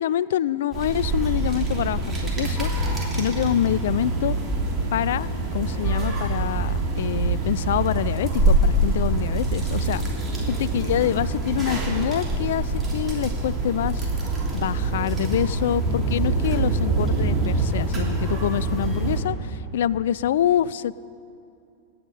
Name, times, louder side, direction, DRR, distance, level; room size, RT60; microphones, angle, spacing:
voice 1, 0.0-4.4 4.9-10.0 10.4-14.1 14.5-20.9, left 11 dB, 60° left, 20 dB, 0.3 m, -26 dB
sound 1, 0.7-19.2, right 2 dB, 20° right, 2.9 m, -25 dB
sound 2, 2.0-9.9, right 7 dB, 55° right, 1.1 m, -40 dB
26.5 x 9.4 x 5.0 m, 2.6 s
figure-of-eight pair, 90°, 0 cm